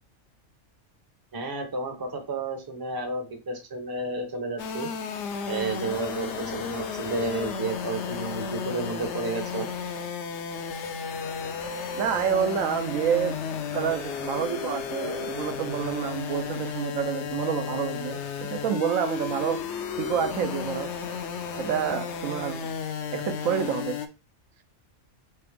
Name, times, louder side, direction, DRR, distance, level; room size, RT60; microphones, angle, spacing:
voice 1, 1.3-4.9 5.5-9.7, right 3 dB, 25° right, 0.6 m, -31 dB
sound 1, 4.6-24.1, left 6 dB, 65° left, 0.8 m, -33 dB
voice 2, 11.9-13.3 13.7-18.2 18.5-19.6 20.0-20.9 21.6-22.6 23.1-24.0, right 8 dB, 80° right, 1.0 m, -28 dB
3.7 x 3.4 x 3.5 m
omnidirectional pair, 1.4 m